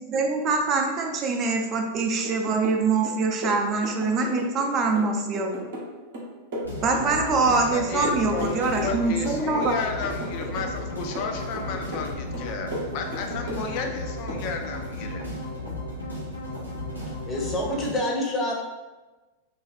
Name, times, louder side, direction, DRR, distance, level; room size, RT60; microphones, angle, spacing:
voice 1, 0.1-5.7 6.8-9.8, right 3 dB, 30° right, 3 dB, 0.4 m, -24 dB
sound 1, 2.2-2.8 3.0-4.7 5.0-7.8 8.0-9.0 9.2-10.9 11.1-12.1 12.3-14.0 14.3-14.5, equal, 55° right, 0.8 m, -35 dB
sound 2, 6.6-17.9, left 1 dB, 90° left, 0.6 m, -34 dB
voice 2, 7.5-15.2, left 4 dB, 45° left, 4 dB, 0.4 m, -33 dB
voice 3, 17.3-18.5, left 1 dB, 25° left, -2 dB, 0.7 m, -27 dB
2.5 x 2.2 x 3.3 m, 1.2 s
figure-of-eight pair, 90°, 0 cm